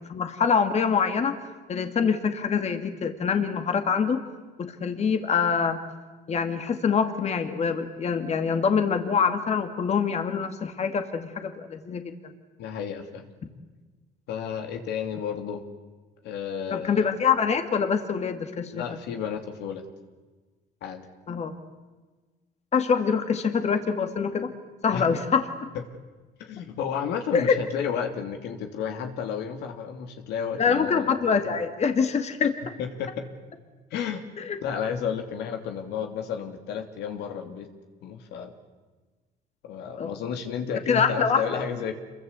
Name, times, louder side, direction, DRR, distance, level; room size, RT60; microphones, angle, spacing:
voice 1, 0.1-1.3 1.7-4.2 4.6-5.8 6.3-12.3 16.7-18.8 21.3-21.5 22.7-24.5 24.8-25.5 27.3-27.6 30.6-32.5 34.4-34.6 40.0-40.1 40.9-41.6, left 6 dB, 40° left, 7 dB, 2.3 m, -25 dB
voice 2, 12.6-13.3 14.3-15.6 16.2-17.1 18.7-19.9 20.8-21.1 24.9-25.1 26.4-31.2 32.8-33.3 33.9-34.2 34.6-37.7 38.0-38.5 39.6-41.9, left 7 dB, 85° left, 5 dB, 2.9 m, -32 dB
27.5 x 23.0 x 8.3 m, 1.3 s
cardioid pair, 110°, 17 cm